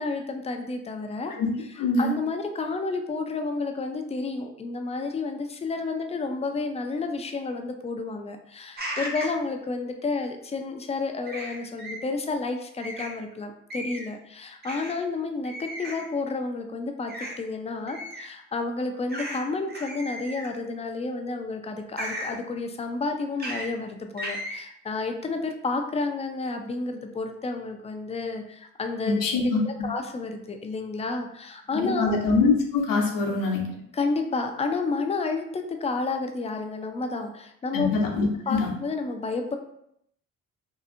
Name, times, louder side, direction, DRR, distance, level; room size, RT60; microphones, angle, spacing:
voice 1, 0.0-1.3 2.0-29.3 29.6-32.2 33.9-37.9 38.5-39.6, left 3 dB, 20° left, 5 dB, 0.4 m, -31 dB
voice 2, 1.8-2.1 29.0-29.9 31.8-33.6 37.7-38.7, left 3 dB, 60° left, 1 dB, 0.7 m, -24 dB
sound 1, 8.8-9.4 11.3-12.0 12.8-13.1 13.7-14.1 14.6-14.9 15.5-16.1 17.1-17.3 17.9-18.3 19.1-19.4 19.7-20.6 22.0-22.4 23.4-23.7 24.2-24.5, equal, 25° right, 0.7 m, -35 dB
2.7 x 2.3 x 2.5 m, 0.74 s
hypercardioid pair, 50°, 37 cm